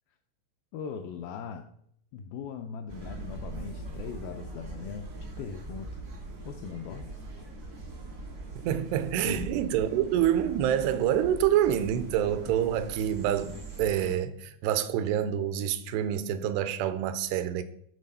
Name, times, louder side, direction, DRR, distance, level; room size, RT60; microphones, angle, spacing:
voice 1, 0.7-1.7 2.1-6.0 6.4-7.1 9.2-9.5, left 6 dB, 85° left, 2.1 m, -39 dB
sound 1, 2.9-14.2, right 2 dB, 65° right, 0.8 m, -42 dB
voice 2, 8.6-17.6, right 10 dB, 85° right, 2.7 m, -27 dB
9.6 x 4.2 x 5.4 m
omnidirectional pair, 4.8 m